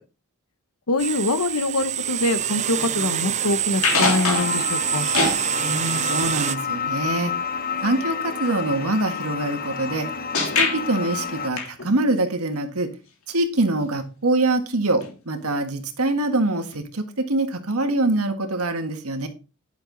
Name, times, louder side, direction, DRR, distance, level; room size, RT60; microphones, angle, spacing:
voice 1, 0.9-5.1, left 2 dB, 85° left, 1.1 m, -24 dB
sound 1, 1.0-6.6, right 10 dB, 30° right, 0.4 m, -26 dB
sound 2, 3.8-4.7 5.1-5.4 10.3-10.8 11.6-12.0 15.0-15.1 15.4-15.5 16.7-16.8, left 3 dB, 70° left, 3.2 m, -23 dB
sound 3, 4.3-11.5, left 6 dB, 40° left, 0.8 m, -30 dB
voice 2, 5.6-7.3 7.8-10.1 10.6-12.9 13.3-19.3, right 2 dB, 70° right, 1.7 m, -24 dB
11.0 x 6.8 x 3.9 m
head